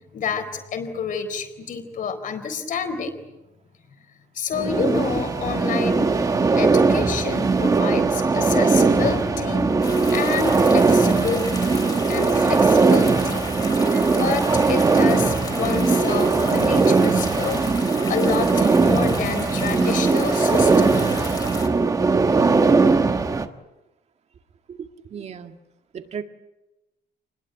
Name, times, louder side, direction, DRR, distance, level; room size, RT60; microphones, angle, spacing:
voice 1, 0.1-3.2 4.3-6.1 6.5-9.7 10.1-11.5 12.1-17.7 18.1-21.0, left 5 dB, 45° left, 9 dB, 4.0 m, -28 dB
sound 1, 4.5-23.5, right 4 dB, 20° right, 1.3 m, -19 dB
sound 2, 4.7-21.7, right 6 dB, 75° right, 6.6 m, -39 dB
sound 3, 9.8-21.7, left 3 dB, 20° left, 3.2 m, -35 dB
voice 2, 24.7-25.6 25.9-26.2, right 7 dB, 35° right, 6 dB, 2.0 m, -35 dB
28.5 x 21.0 x 9.2 m, 0.99 s
cardioid pair, 175°, 18 cm